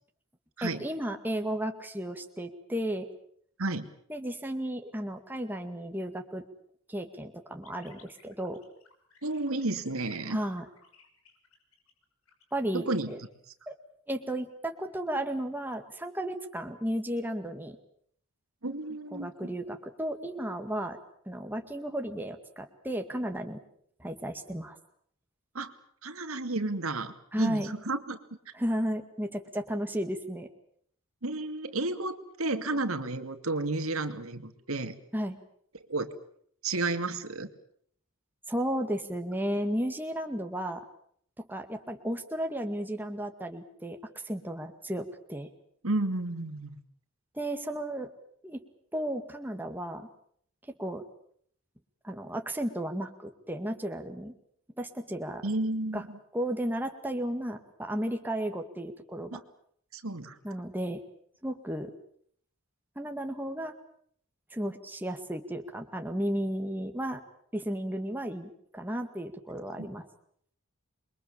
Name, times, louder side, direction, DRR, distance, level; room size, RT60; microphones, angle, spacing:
voice 1, 0.6-3.1 4.1-6.4 6.9-8.6 10.3-10.6 12.5-13.2 13.7-13.8 14.1-17.8 19.1-21.0 21.3-23.6 24.0-24.8 27.3-27.8 28.5-30.5 35.1-35.4 38.5-40.8 41.5-44.0 44.2-45.5 47.3-48.1 48.4-48.6 48.9-50.1 50.8-51.0 52.0-54.3 54.8-55.4 55.9-56.0 56.3-59.3 60.4-61.0 61.4-61.9 63.0-63.7 64.5-67.2 67.5-70.0, right 1 dB, 10° right, 5 dB, 2.1 m, -34 dB
sound 1, 7.6-13.3, left 5 dB, 90° left, 6.1 m, -60 dB
voice 2, 9.2-10.4 12.7-13.1 18.6-19.5 25.5-25.7 26.0-28.2 31.2-35.0 35.7-36.1 36.6-37.5 45.8-46.8 55.4-56.2 59.3-59.4 59.9-60.4 69.8-69.9, right 2 dB, 85° right, 8 dB, 2.5 m, -32 dB
28.0 x 23.0 x 7.4 m, 0.65 s
head